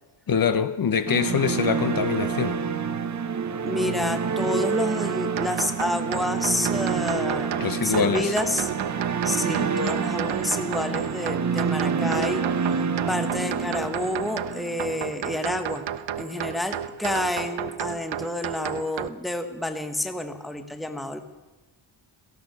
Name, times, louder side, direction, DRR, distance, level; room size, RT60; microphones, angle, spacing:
voice 1, 0.3-2.6 7.6-8.3, left 6 dB, 45° left, 0.9 m, -24 dB
sound 1, 1.1-15.2, right 6 dB, 35° right, 0.8 m, -28 dB
voice 2, 3.6-7.6 7.8-8.7 9.2-15.8 16.2-21.2, left 1 dB, ahead, 0.9 m, -29 dB
sound 2, 5.4-19.1, right 10 dB, 75° right, 0.7 m, -33 dB
16.5 x 14.5 x 5.4 m
wide cardioid pair, 155°, 47 cm